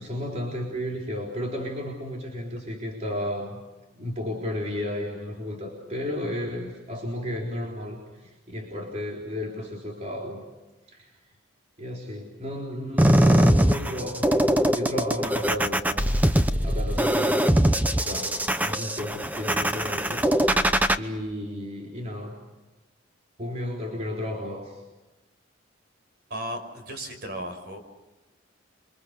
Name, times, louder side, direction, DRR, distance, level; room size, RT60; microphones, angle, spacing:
voice 1, 0.0-3.6 4.0-10.4 10.9-11.1 11.8-16.0 16.6-17.4 18.0-20.3 21.0-22.4 23.4-24.8, left 1 dB, 35° right, -1 dB, 4.0 m, -33 dB
sound 1, 13.0-21.0, equal, 10° right, 0.9 m, -22 dB
voice 2, 26.3-27.8, right 1 dB, 50° right, 6 dB, 5.4 m, -35 dB
29.5 x 25.0 x 6.7 m, 1.1 s
head